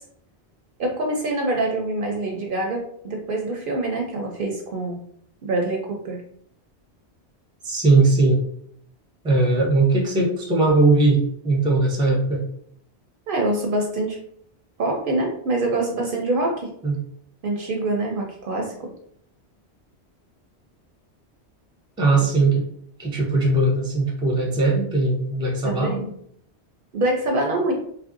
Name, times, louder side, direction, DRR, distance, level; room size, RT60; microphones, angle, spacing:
voice 1, 0.8-5.0 5.4-6.2 13.3-14.2 14.8-16.7 17.4-18.9 25.6-26.1 26.9-27.7, right 2 dB, 60° right, 1 dB, 0.6 m, -25 dB
voice 2, 7.6-8.4 9.2-12.4 16.8-17.0 22.0-22.6 23.0-26.1, right 2 dB, 5° right, -1 dB, 0.4 m, -19 dB
3.0 x 2.5 x 2.5 m, 0.66 s
omnidirectional pair, 1.1 m